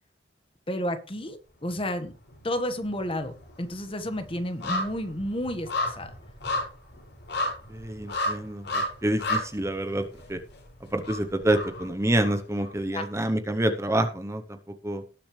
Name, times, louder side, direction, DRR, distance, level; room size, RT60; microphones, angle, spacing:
voice 1, 0.7-2.1 2.4-6.1 12.9-13.1, left 1 dB, 30° left, 8 dB, 1.5 m, -31 dB
sound 1, 1.7-2.4 2.7-12.7 13.0-13.1, left 1 dB, 65° left, 6.0 m, -33 dB
voice 2, 7.7-10.4 10.9-14.6 14.8-15.0, right 1 dB, 15° right, 7 dB, 0.9 m, -27 dB
18.5 x 6.8 x 3.3 m, 0.35 s
head